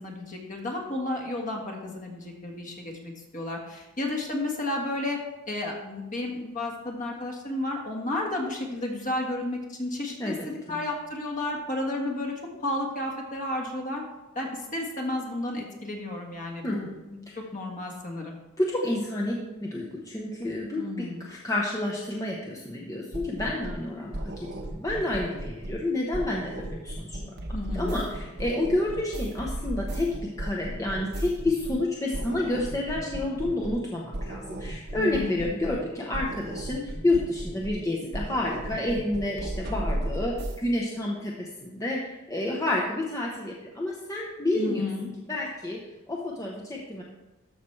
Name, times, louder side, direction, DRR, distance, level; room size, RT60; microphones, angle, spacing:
voice 1, 0.0-5.2 5.5-14.0 14.3-17.2 17.5-18.4 20.8-21.2 27.5-28.0 34.9-35.4 44.5-45.1, left 1 dB, 35° left, 0 dB, 1.5 m, -32 dB
voice 2, 10.2-10.8 16.6-16.9 17.3-17.4 18.6-27.2 27.7-30.1 30.4-44.9 45.3-45.8 46.1-47.0, left 1 dB, 15° left, -3 dB, 0.8 m, -29 dB
sound 1, 23.1-23.9 24.1-25.9 26.1-31.9 32.1-33.9 34.1-35.9 36.1-37.9 38.1-40.6, right 1 dB, 50° right, 1.0 m, -35 dB
13.0 x 5.8 x 3.2 m, 1.0 s
head